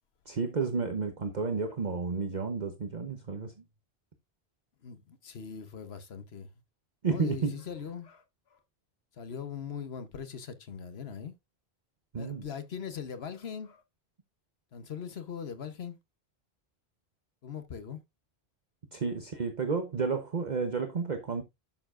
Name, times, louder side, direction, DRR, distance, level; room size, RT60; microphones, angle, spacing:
voice 1, 0.3-3.5 7.0-7.6 12.1-12.4 18.9-21.4, right 5 dB, 45° right, 1.0 m, -31 dB
voice 2, 4.8-6.5 7.1-8.2 8.5-8.6 9.1-11.3 12.2-13.8 14.7-16.0 17.4-18.0, left 7 dB, 75° left, 1.2 m, -41 dB
11.0 x 7.0 x 2.5 m
omnidirectional pair, 1.1 m